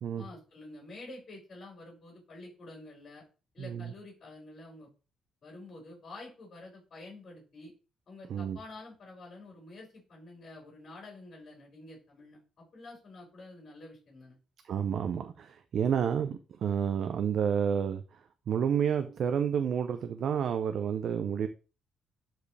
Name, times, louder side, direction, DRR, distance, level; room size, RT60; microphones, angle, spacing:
voice 1, 0.2-3.2 3.5-4.9 5.4-7.7 8.1-14.4, left 2 dB, 40° left, -2 dB, 5.1 m, -49 dB
voice 2, 14.7-18.0 18.5-21.5, right 8 dB, 55° right, 8 dB, 0.6 m, -30 dB
12.0 x 4.6 x 3.3 m, 0.33 s
cardioid pair, 125°, 0 cm